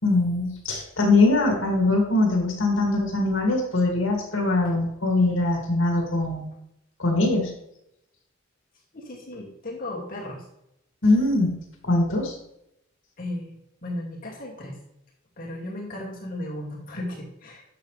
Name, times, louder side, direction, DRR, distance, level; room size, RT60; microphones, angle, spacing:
voice 1, 0.0-6.5 7.0-7.5 11.0-11.5 11.8-12.3, left 2 dB, 65° left, 1 dB, 2.4 m, -22 dB
voice 2, 8.9-10.4 13.2-13.5 13.8-14.7 15.4-17.6, left 1 dB, 45° left, -2 dB, 2.3 m, -35 dB
11.5 x 6.8 x 3.3 m, 0.80 s
head